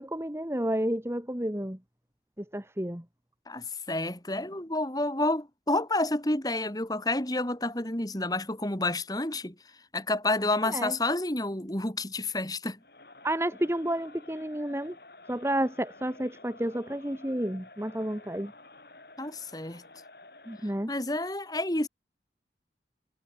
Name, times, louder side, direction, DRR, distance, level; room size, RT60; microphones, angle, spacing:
voice 1, 0.0-1.8 2.4-3.0 10.7-10.9 13.2-14.9 15.3-18.5 20.5-20.9, right 1 dB, 15° right, 1.6 m, -31 dB
voice 2, 3.5-12.8 19.2-19.8 20.6-21.9, left 2 dB, 20° left, 2.7 m, -30 dB
Crowd, 12.8-20.9, left 2 dB, 60° left, 6.4 m, -52 dB
head